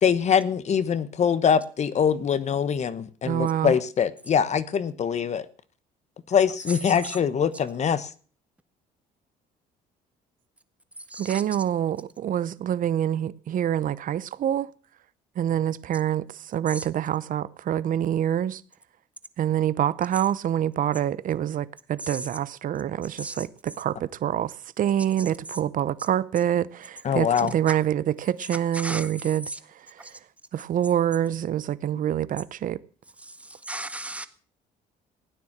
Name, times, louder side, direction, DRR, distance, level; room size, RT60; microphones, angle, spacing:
voice 1, 0.0-5.4 6.3-8.1 27.0-27.5, left 7 dB, 40° left, 1.2 m, -23 dB
voice 2, 3.2-3.8 11.2-14.7 15.4-18.6 19.4-29.5 29.7-30.1 30.5-32.8, right 10 dB, 50° right, 0.8 m, -26 dB
voice 3, 11.1-11.4 16.7-16.9 22.0-22.3 23.2-23.4 27.7-27.8 28.7-29.1 29.5-29.6 30.0-30.1 33.2-34.3, right 1 dB, 10° right, 1.5 m, -35 dB
16.5 x 9.6 x 7.4 m
cardioid pair, 110°, 17 cm